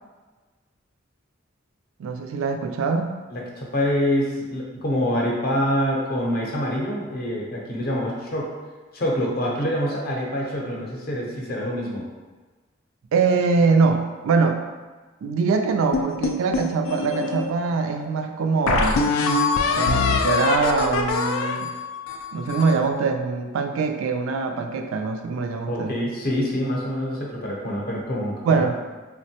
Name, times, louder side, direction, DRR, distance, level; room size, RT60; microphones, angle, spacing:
voice 1, 2.0-3.1 13.1-14.6 15.2-19.0 19.7-21.7 22.3-26.0 28.4-28.7, right 4 dB, 75° right, 6 dB, 0.3 m, -23 dB
voice 2, 3.3-8.5 8.9-12.1 25.7-28.6, equal, 45° left, -3 dB, 0.6 m, -26 dB
sound 1, 15.9-17.5 18.0-18.1 18.7-22.8, left 4 dB, 90° left, 0.3 m, -23 dB
3.5 x 2.1 x 2.8 m, 1.3 s
head